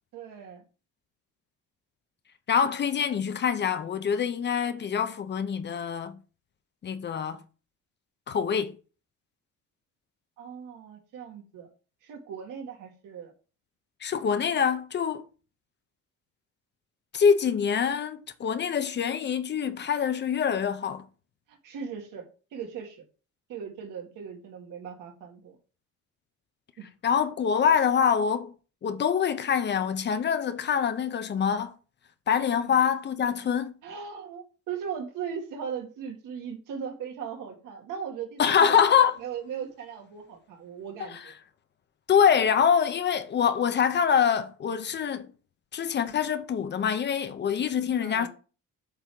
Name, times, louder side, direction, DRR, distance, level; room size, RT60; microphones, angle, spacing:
voice 1, 0.1-0.6 10.4-11.7 12.0-13.3 21.5-22.3 22.5-23.0 23.5-25.6 26.8-26.9 32.6-32.8 33.8-41.3 48.0-48.3, right 7 dB, 80° right, 2.1 m, -38 dB
voice 2, 2.5-6.2 6.8-7.4 8.3-8.8 14.0-15.2 17.1-21.0 27.0-28.5 28.8-31.7 32.3-33.7 38.4-39.2 41.1-41.2 42.1-45.3 45.7-48.3, left 7 dB, 35° left, 0.6 m, -25 dB
8.1 x 3.5 x 6.0 m
cardioid pair, 160°, 31 cm